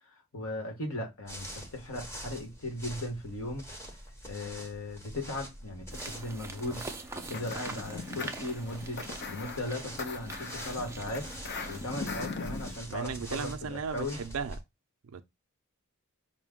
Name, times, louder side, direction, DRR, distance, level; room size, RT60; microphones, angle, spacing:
voice 1, 0.3-3.6 4.2-11.3 11.7-14.2, left 1 dB, 70° left, 1.3 m, -37 dB
sound 1, 1.3-14.6, equal, 10° left, 0.9 m, -45 dB
sound 2, 5.9-12.0, right 3 dB, 10° right, 0.4 m, -44 dB
sound 3, 7.2-12.8, left 4 dB, 50° left, 0.5 m, -40 dB
voice 2, 12.9-14.6 15.0-15.2, right 6 dB, 70° right, 0.4 m, -36 dB
5.0 x 2.2 x 3.6 m
head